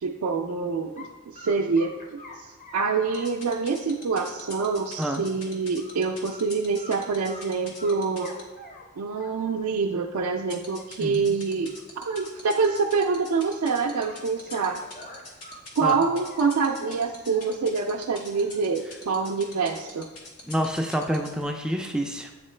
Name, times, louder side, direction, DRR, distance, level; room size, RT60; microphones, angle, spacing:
voice 1, 0.0-2.2 2.7-8.3 9.0-14.8 15.8-20.1, right 4 dB, 85° right, 0 dB, 0.4 m, -26 dB
sound 1, 1.0-1.1 1.4-5.2 5.5-6.0 6.3-6.4 6.8-7.5 7.8-9.7 10.4-10.5 10.8-10.9 11.2-11.3 11.6-11.9 12.1-13.6 14.0-16.5 16.7-18.6 19.0-19.7, left 2 dB, 35° left, 0.7 m, -47 dB
sound 2, 3.1-8.4 10.5-21.4, left 3 dB, 85° left, 1.1 m, -42 dB
voice 2, 11.0-11.4 15.8-16.0 20.5-22.3, equal, 5° right, 3 dB, 0.3 m, -28 dB
8.5 x 3.7 x 3.2 m, 1.2 s
head